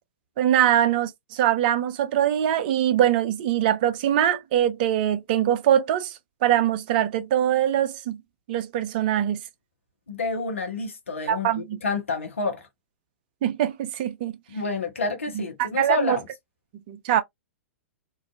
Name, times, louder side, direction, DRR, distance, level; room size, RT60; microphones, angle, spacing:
voice 1, 0.4-8.2 8.5-9.4 11.3-11.6 13.4-14.4 15.3-16.2 16.9-17.2, right 11 dB, 40° right, 0.5 m, -23 dB
voice 2, 10.1-12.7 14.5-16.3, left 3 dB, 70° left, 0.8 m, -29 dB
2.5 x 2.3 x 2.3 m
figure-of-eight pair, 105°, 7 cm